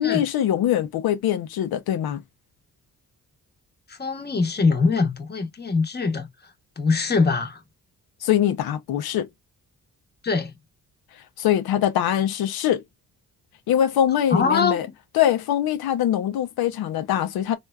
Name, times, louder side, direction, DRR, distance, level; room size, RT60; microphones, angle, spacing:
voice 1, 0.0-2.2 8.2-9.3 11.4-12.8 13.7-14.9 15.1-17.6, left 11 dB, 85° left, 0.6 m, -23 dB
voice 2, 3.9-6.3 6.8-7.6 10.2-10.5 14.3-14.9, left 4 dB, 25° left, 0.9 m, -22 dB
3.3 x 2.2 x 2.3 m
cardioid pair, 75°, 36 cm